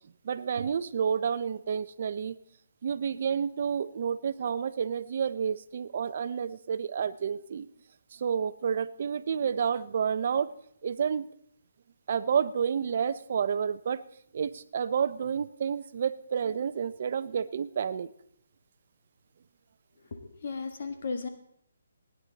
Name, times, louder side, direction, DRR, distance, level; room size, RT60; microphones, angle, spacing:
voice 1, 0.2-2.4 2.8-7.7 8.1-10.5 10.8-11.3 12.1-14.0 14.3-18.1, right 7 dB, 50° right, 14 dB, 0.6 m, -30 dB
voice 2, 19.9-21.3, left 4 dB, 55° left, 6 dB, 1.6 m, -36 dB
19.0 x 9.9 x 4.0 m, 0.71 s
hypercardioid pair, 160°, 0 cm